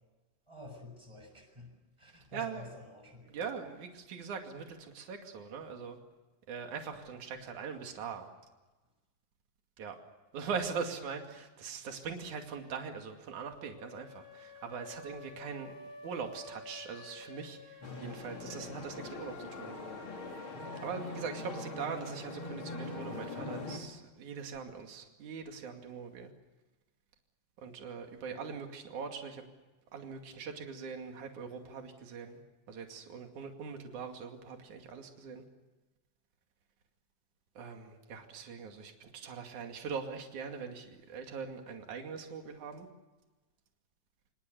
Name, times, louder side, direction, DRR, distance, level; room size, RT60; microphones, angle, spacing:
voice 1, 0.5-3.7, left 2 dB, 10° right, 3 dB, 7.5 m, -50 dB
voice 2, 2.3-2.6 3.3-6.0 6.5-8.3 9.8-10.0 10.3-19.8 20.8-26.3 27.6-29.5 29.9-32.4 32.7-35.4 37.6-42.9, right 6 dB, 70° right, 4 dB, 3.8 m, -41 dB
sound 1, 13.7-18.7, left 3 dB, 75° left, 6.1 m, -51 dB
sound 2, 17.8-23.8, left 3 dB, 40° left, 4.0 m, -42 dB
27.5 x 27.0 x 6.9 m, 1.2 s
omnidirectional pair, 3.5 m